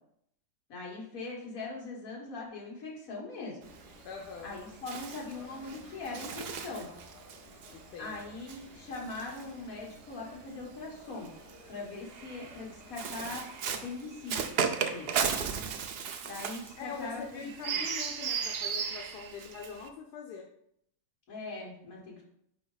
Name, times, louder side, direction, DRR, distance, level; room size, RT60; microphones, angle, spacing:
voice 1, 0.7-3.6 4.4-6.9 8.0-11.3 11.7-15.1 16.2-17.4 17.7-17.8 21.3-22.2, left 3 dB, 60° left, -3 dB, 1.9 m, -41 dB
sound 1, 3.6-13.4, left 2 dB, 25° left, 1.2 m, -55 dB
Bird, 3.6-10.2 11.1-19.9, right 6 dB, 90° right, 0.5 m, -36 dB
voice 2, 4.0-4.6 7.7-8.2 15.1-15.5 16.8-20.5, left 5 dB, 85° left, 1 dB, 1.2 m, -43 dB
5.0 x 4.8 x 3.9 m, 0.73 s
omnidirectional pair, 1.7 m